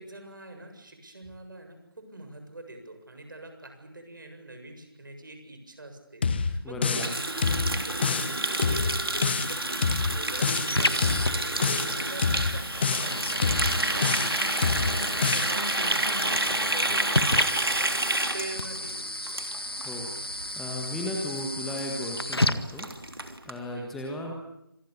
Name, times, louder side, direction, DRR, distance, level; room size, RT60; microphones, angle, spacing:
voice 1, 0.0-7.1 7.6-13.5 13.8-14.1 15.1-19.1 23.7-24.0, right 2 dB, 60° right, 6 dB, 7.4 m, -44 dB
sound 1, 6.2-7.1 7.4-8.3 8.6-9.5 9.8-10.7 11.0-11.9 12.2-13.1 13.4-14.3 14.6-15.5, left 5 dB, 25° left, 1.1 m, -27 dB
voice 2, 6.6-7.1 19.7-22.9 23.4-24.3, left 1 dB, 5° left, 0 dB, 1.5 m, -35 dB
Water tap faucet, 6.9-19.9 20.2-20.5 20.8-21.1 21.4-21.5 21.7-21.8 22.2-22.3 22.5-23.5, right 2 dB, 80° right, 3.3 m, -29 dB
sound 2, 9.4-23.4, left 1 dB, 85° left, 1.8 m, -33 dB
26.5 x 20.0 x 8.7 m, 0.81 s
figure-of-eight pair, 165°, 12 cm